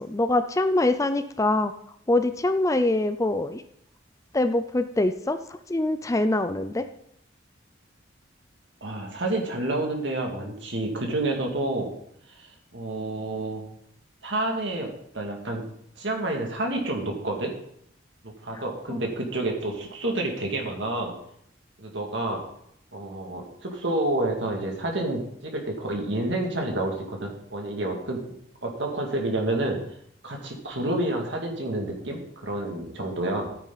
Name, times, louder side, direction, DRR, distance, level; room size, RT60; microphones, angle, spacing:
voice 1, 0.0-1.7 2.1-3.6 4.3-6.8 18.5-18.6 18.9-19.0, left 2 dB, 15° left, 10 dB, 0.4 m, -24 dB
voice 2, 8.8-11.9 12.4-12.5 12.7-13.6 14.2-15.6 16.0-17.5 18.2-21.1 21.8-22.4 22.9-28.2 28.6-29.8 30.2-33.5, right 2 dB, 60° right, 1 dB, 2.5 m, -29 dB
14.0 x 9.4 x 4.1 m, 0.72 s
head